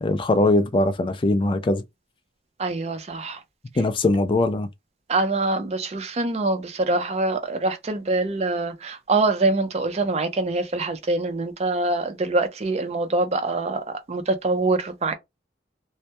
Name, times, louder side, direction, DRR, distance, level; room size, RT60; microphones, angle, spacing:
voice 1, 0.0-1.8 3.8-4.7, left 2 dB, 30° left, 0.3 m, -21 dB
voice 2, 2.6-3.4 5.1-15.1, right 2 dB, 35° right, 0.5 m, -24 dB
2.2 x 2.1 x 2.7 m
head